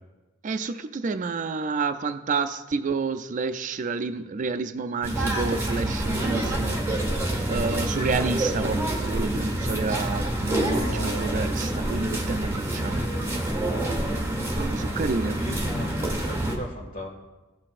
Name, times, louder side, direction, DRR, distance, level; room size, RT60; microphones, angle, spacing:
voice 1, 0.4-13.0 14.6-15.3, right 4 dB, 40° right, 10 dB, 0.4 m, -29 dB
sound 1, 5.0-16.5, right 1 dB, 15° right, 1.6 m, -27 dB
voice 2, 10.7-11.5 15.1-17.1, equal, 45° left, 0 dB, 1.9 m, -36 dB
16.5 x 5.8 x 2.5 m, 1.1 s
head